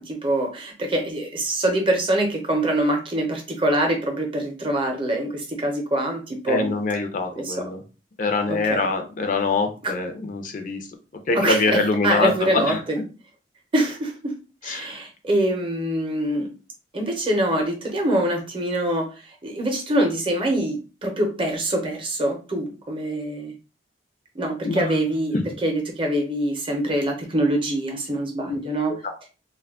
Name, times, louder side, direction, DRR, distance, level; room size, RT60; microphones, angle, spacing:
voice 1, 0.0-6.7 7.4-7.7 8.5-8.9 9.8-9.9 11.3-11.8 12.0-13.0 13.7-14.3 14.6-16.5 16.9-19.1 19.4-23.5 24.3-28.9, right 1 dB, 30° right, 3 dB, 0.6 m, -24 dB
voice 2, 6.5-7.8 8.2-10.9 11.3-12.8 14.6-14.9 24.6-25.0 25.3-25.4 28.5-28.6 28.9-29.1, left 3 dB, 50° left, 6 dB, 0.5 m, -24 dB
2.2 x 2.1 x 3.5 m, 0.33 s
head